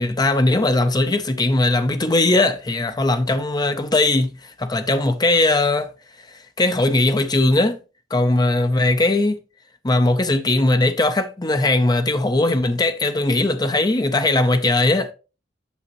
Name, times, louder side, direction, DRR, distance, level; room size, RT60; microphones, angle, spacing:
voice 1, 0.0-5.9 6.6-7.8 8.1-9.4 9.8-15.1, left 2 dB, 20° left, 0.6 m, -19 dB
8.3 x 6.1 x 3.0 m
head